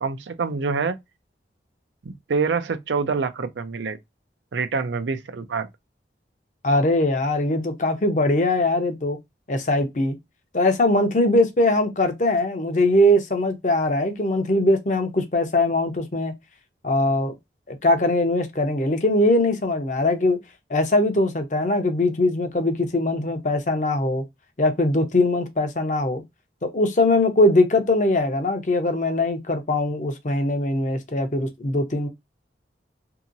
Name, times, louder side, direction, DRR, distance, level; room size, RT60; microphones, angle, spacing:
voice 1, 0.0-1.0 2.0-4.0 4.5-5.7, right 4 dB, 85° right, 0.5 m, -26 dB
voice 2, 6.6-9.2 9.5-10.2 10.5-16.3 16.8-17.3 17.7-20.4 20.7-24.2 24.6-26.2 26.6-32.1, left 1 dB, 45° left, 0.7 m, -21 dB
2.8 x 2.8 x 2.5 m
head